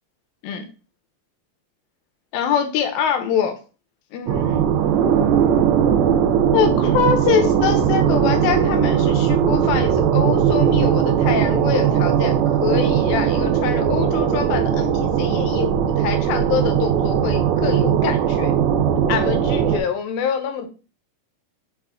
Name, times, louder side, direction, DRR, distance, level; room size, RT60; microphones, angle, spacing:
voice 1, 2.3-3.5 4.1-4.6 6.5-18.5 19.1-20.7, left 8 dB, 80° left, 6 dB, 2.5 m, -24 dB
sound 1, 4.3-19.8, right 9 dB, 80° right, 2.3 m, -19 dB
6.2 x 2.5 x 3.5 m, 0.34 s
omnidirectional pair, 4.1 m